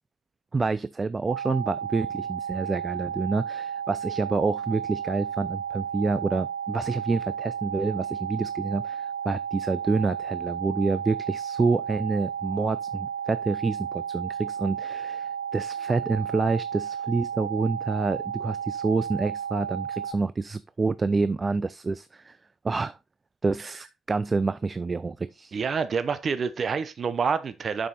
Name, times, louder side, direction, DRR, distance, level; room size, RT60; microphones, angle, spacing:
voice 1, 0.5-22.4 22.6-23.0 23.4-25.6, right 3 dB, 30° right, 0.4 m, -28 dB
sound 1, 1.3-20.1, right 8 dB, 85° right, 0.7 m, -33 dB
voice 2, 25.5-27.9, right 5 dB, 45° right, 0.8 m, -27 dB
7.3 x 5.5 x 4.1 m
cardioid pair, 90°, 0 cm